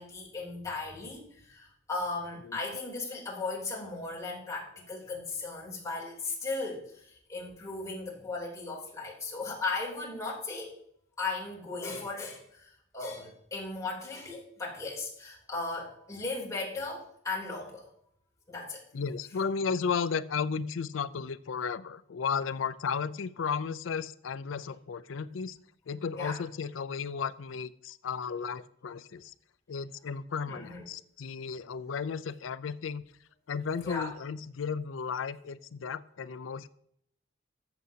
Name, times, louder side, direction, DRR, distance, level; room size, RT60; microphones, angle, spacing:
voice 1, 0.0-10.7 11.2-17.9 18.5-18.8 26.1-26.4 30.5-30.8 33.8-34.1, left 3 dB, 15° left, -5 dB, 3.2 m, -37 dB
voice 2, 18.9-25.6 25.9-29.3 29.7-33.0 33.5-36.7, left 6 dB, 80° left, 16 dB, 0.4 m, -34 dB
14.0 x 7.0 x 2.8 m, 0.69 s
head